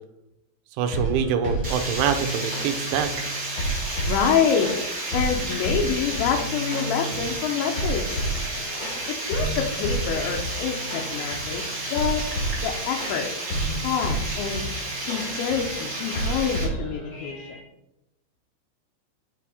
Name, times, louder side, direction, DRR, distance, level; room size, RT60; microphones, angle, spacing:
voice 1, 0.8-3.1, right 8 dB, 85° right, 8 dB, 3.0 m, -25 dB
sound 1, 0.9-17.6, right 1 dB, 50° left, 1.4 m, -31 dB
Water, 1.6-16.6, right 2 dB, 25° right, 1.8 m, -32 dB
voice 2, 4.0-4.7 5.1-8.3 9.1-12.2 12.6-13.3 13.8-14.7 15.0-17.6, left 7 dB, 80° left, 1 dB, 2.9 m, -26 dB
8.6 x 4.3 x 4.8 m, 0.86 s
omnidirectional pair, 5.5 m